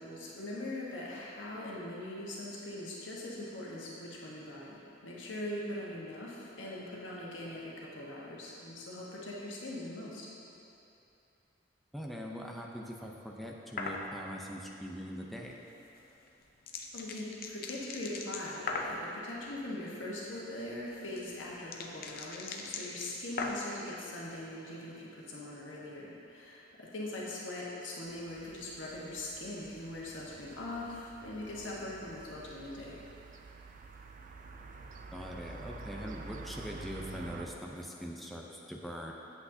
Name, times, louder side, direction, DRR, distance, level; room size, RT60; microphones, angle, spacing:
voice 1, 0.0-10.3 16.9-33.0, left 1 dB, 85° left, -5 dB, 1.4 m, -41 dB
voice 2, 11.9-15.5 35.1-39.1, equal, ahead, -1 dB, 0.6 m, -42 dB
sound 1, 13.8-14.0 15.9-19.0 20.6-23.8, left 4 dB, 55° left, 0.6 m, -39 dB
sound 2, 28.0-37.5, right 3 dB, 45° right, 0.4 m, -49 dB
8.3 x 8.0 x 2.8 m, 2.7 s
head